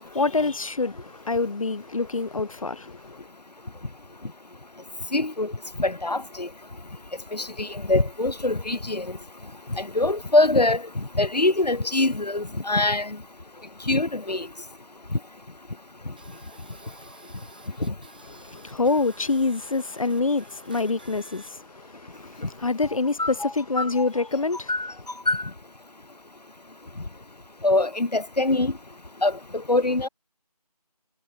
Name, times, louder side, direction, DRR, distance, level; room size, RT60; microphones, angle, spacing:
voice 1, 0.1-3.3 18.4-24.7, left 3 dB, 55° left, 0.4 m, -26 dB
voice 2, 5.1-5.5 5.8-6.5 7.3-9.1 9.7-13.2 13.9-14.5 15.1-15.2 23.2-24.1 24.7-24.9 25.3-25.5 27.6-28.7 29.2-30.1, left 2 dB, 85° left, 1.3 m, -24 dB
sound 1, 16.2-21.5, right 4 dB, 15° right, 2.7 m, -52 dB
figure-of-eight pair, 175°, 20 cm